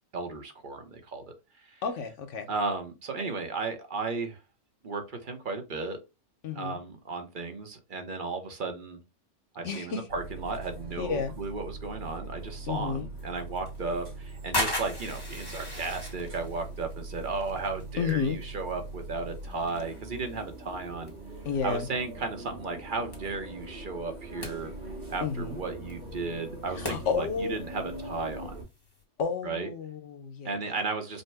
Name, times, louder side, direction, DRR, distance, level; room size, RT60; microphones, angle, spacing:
voice 1, 0.1-1.3 1.6-1.8 2.5-4.4 4.8-6.0 6.5-9.0 9.5-21.1 21.6-24.7 25.1-28.5 29.4-29.7 30.4-31.2, right 3 dB, 45° right, 0.9 m, -34 dB
voice 2, 1.8-2.5 6.4-6.8 9.6-10.0 11.0-11.3 12.7-13.1 18.0-18.4 21.4-21.9 25.2-25.6 26.8-27.6 29.2-30.5, left 6 dB, 90° left, 1.2 m, -31 dB
sound 1, 10.1-28.6, right 2 dB, 85° right, 2.1 m, -42 dB
sound 2, 13.2-29.0, left 1 dB, 20° left, 1.1 m, -41 dB
5.4 x 2.1 x 3.3 m
omnidirectional pair, 1.2 m